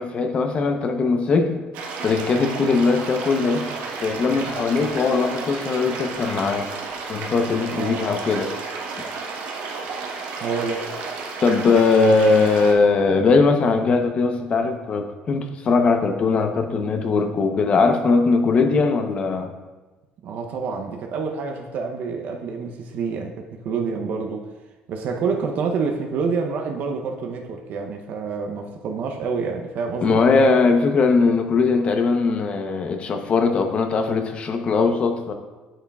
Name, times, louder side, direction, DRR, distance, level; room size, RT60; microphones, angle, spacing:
voice 1, 0.0-1.6 2.0-6.7 7.1-8.5 11.4-19.5 30.0-35.3, left 4 dB, 40° left, 5 dB, 0.7 m, -20 dB
sound 1, 1.7-12.7, right 4 dB, 90° right, 1.2 m, -32 dB
voice 2, 7.7-8.1 10.4-10.9 20.2-24.5 24.9-30.2, right 5 dB, 65° right, 3 dB, 0.6 m, -27 dB
8.7 x 7.1 x 2.3 m, 1.2 s
cardioid pair, 130°, 3 cm